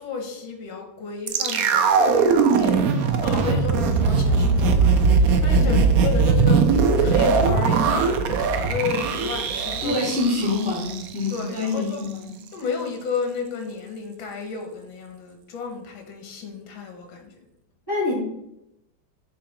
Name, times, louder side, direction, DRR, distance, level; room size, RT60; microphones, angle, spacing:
voice 1, 0.0-10.1 10.4-10.6 11.3-12.1 12.5-17.3, left 5 dB, 80° left, 4 dB, 1.9 m, -32 dB
sound 1, 1.3-11.4 11.7-11.8, right 4 dB, 65° right, 0.9 m, -20 dB
voice 2, 9.8-12.3 17.9-18.2, left 3 dB, 10° left, -6 dB, 2.4 m, -25 dB
7.2 x 3.8 x 5.1 m, 0.86 s
omnidirectional pair, 2.1 m